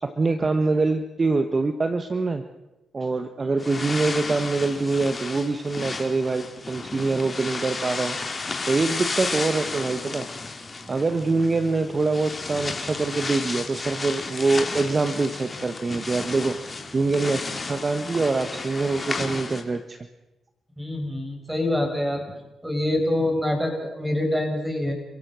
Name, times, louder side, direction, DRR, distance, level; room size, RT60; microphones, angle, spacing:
voice 1, 0.0-2.4 2.9-8.2 8.7-10.3 10.9-16.6 16.9-20.0, right 3 dB, 35° right, 9 dB, 1.3 m, -24 dB
sound 1, 3.6-19.6, left 3 dB, 35° left, 3.4 m, -33 dB
voice 2, 20.8-22.2 22.6-24.9, left 1 dB, 5° right, 3 dB, 6.8 m, -25 dB
29.5 x 16.0 x 6.4 m, 1.0 s
supercardioid pair, 55°, 0 cm